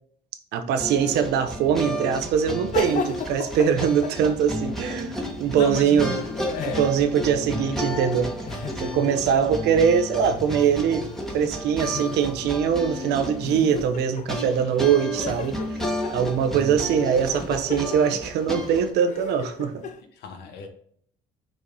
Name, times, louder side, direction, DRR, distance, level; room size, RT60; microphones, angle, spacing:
voice 1, 0.5-6.2 6.8-8.3 8.8-11.0 11.3-15.8 16.1-19.8, right 7 dB, 80° right, 9 dB, 0.9 m, -22 dB
sound 1, 0.8-18.9, equal, ahead, 1.6 m, -32 dB
sound 2, 2.7-5.4 5.7-9.5 10.2-10.7 11.1-11.2 11.8-12.6 12.9-13.0 13.4-14.8 15.2-20.0, left 7 dB, 45° left, 0.6 m, -37 dB
voice 2, 5.5-6.8 20.1-20.7, left 4 dB, 85° left, 5 dB, 1.3 m, -34 dB
6.3 x 4.6 x 3.9 m, 0.64 s
cardioid pair, 110°, 17 cm